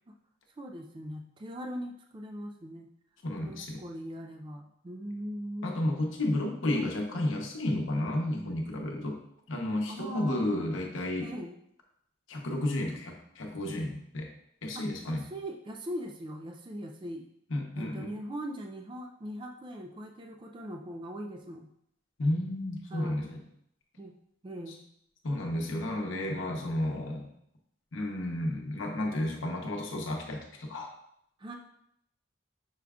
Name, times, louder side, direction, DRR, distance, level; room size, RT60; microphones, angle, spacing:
voice 1, 0.6-2.9 3.4-5.8 6.7-6.9 9.9-10.8 11.2-11.6 14.7-17.3 17.8-21.7 22.9-23.3 24.0-24.1 24.4-24.8 31.4-31.6, equal, 25° right, 2 dB, 0.3 m, -40 dB
voice 2, 3.2-3.8 5.6-9.2 9.5-11.3 12.3-14.3 14.6-15.3 17.5-18.2 22.2-23.4 24.7-24.8 25.2-27.3 27.9-30.9, left 1 dB, 75° left, 1 dB, 0.8 m, -32 dB
6.2 x 2.3 x 3.5 m, 0.72 s
head